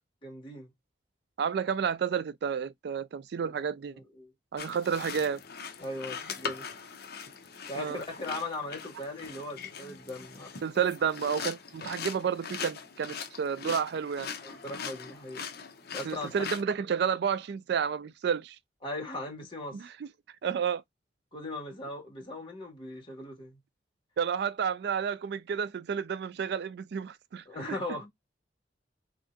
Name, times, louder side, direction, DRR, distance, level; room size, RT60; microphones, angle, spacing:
voice 1, 0.2-0.7 3.4-3.5 3.9-4.3 5.8-6.7 7.7-10.7 14.4-15.4 15.9-16.3 18.8-19.8 21.3-23.6 27.5-28.1, left 2 dB, 30° left, 2.1 m, -39 dB
voice 2, 1.4-3.9 4.5-5.4 7.8-8.0 10.6-14.3 16.0-18.6 19.7-19.8 20.4-20.8 24.2-27.8, right 7 dB, 65° right, 0.3 m, -31 dB
sound 1, 4.6-16.6, left 6 dB, 60° left, 0.8 m, -41 dB
3.8 x 3.3 x 2.6 m
head